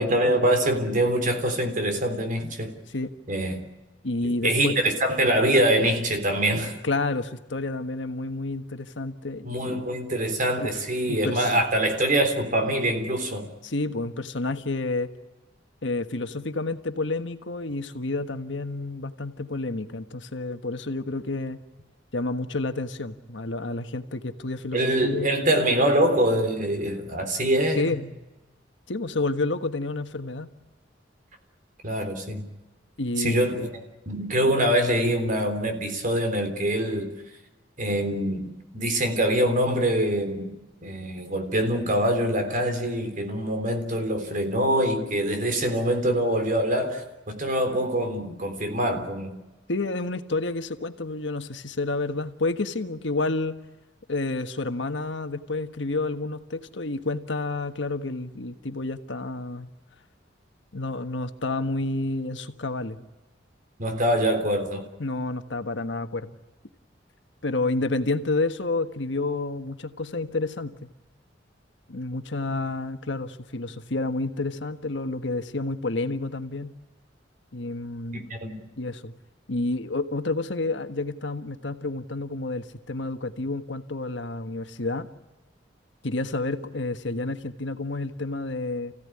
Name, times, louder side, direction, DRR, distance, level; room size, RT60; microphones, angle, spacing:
voice 1, 0.0-2.8 3.3-3.6 4.2-6.8 9.4-13.5 24.7-28.0 31.8-32.5 33.2-33.7 34.1-37.1 37.8-40.6 40.8-49.3 63.8-64.9 78.1-78.7, right 1 dB, 45° right, 3.7 m, -24 dB
voice 2, 4.0-4.8 6.8-9.9 10.6-10.7 11.1-11.5 13.6-15.1 15.8-21.6 22.1-25.6 27.8-28.0 28.9-30.5 33.0-33.6 49.7-53.6 54.1-59.7 60.7-63.1 65.0-66.4 67.4-70.9 71.9-76.7 77.5-78.3 78.8-79.1 79.5-85.1 86.0-88.9, left 2 dB, 75° left, 1.5 m, -30 dB
28.5 x 16.5 x 9.9 m
head